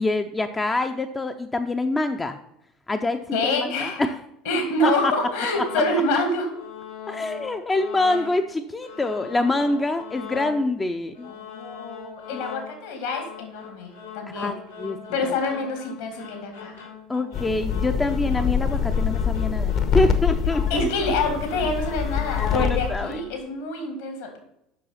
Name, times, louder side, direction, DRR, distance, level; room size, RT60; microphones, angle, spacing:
voice 1, 0.0-2.4 2.9-3.4 3.8-4.2 4.8-5.1 7.1-11.3 14.3-15.0 17.1-20.8 22.5-23.2, left 2 dB, 15° left, 7 dB, 0.6 m, -25 dB
voice 2, 3.3-4.1 4.5-6.5 8.1-8.2 11.2-14.6 15.1-16.7 20.7-24.4, left 2 dB, 65° left, 3 dB, 2.2 m, -26 dB
sound 1, 5.0-6.2 6.5-8.5 8.8-10.8 11.1-23.4, left 7 dB, 80° left, 2.3 m, -41 dB
sound 2, 17.3-23.1, left 7 dB, 40° left, 1.0 m, -25 dB
7.5 x 6.2 x 5.7 m, 0.81 s
figure-of-eight pair, 65°, 0 cm